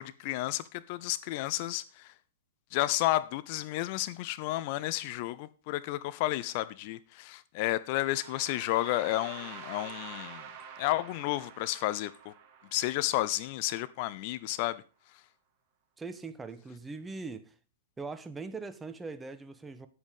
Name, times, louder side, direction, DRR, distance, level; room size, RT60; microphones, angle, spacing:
voice 1, 0.0-2.1 2.7-10.4 10.8-12.3 12.7-14.8, left 16 dB, 45° left, 0.6 m, -32 dB
sound 1, 7.8-13.8, right 7 dB, 40° right, 2.2 m, -48 dB
voice 2, 16.0-17.5 18.0-19.9, right 4 dB, 10° right, 1.0 m, -41 dB
9.7 x 8.3 x 5.3 m
hypercardioid pair, 115°, 0 cm